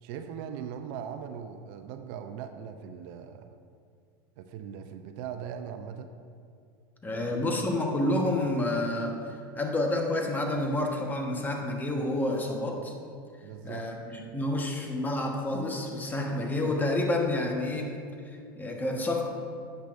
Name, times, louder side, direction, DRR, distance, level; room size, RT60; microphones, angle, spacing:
voice 1, 0.0-3.5 4.4-6.1 7.1-7.6 13.4-13.9, right 8 dB, 60° right, 8 dB, 0.5 m, -40 dB
voice 2, 7.0-9.2 9.5-12.9 13.6-17.9 18.3-19.3, left 1 dB, 15° left, 1 dB, 1.3 m, -29 dB
10.0 x 8.1 x 2.6 m, 2.3 s
hypercardioid pair, 105°, 12 cm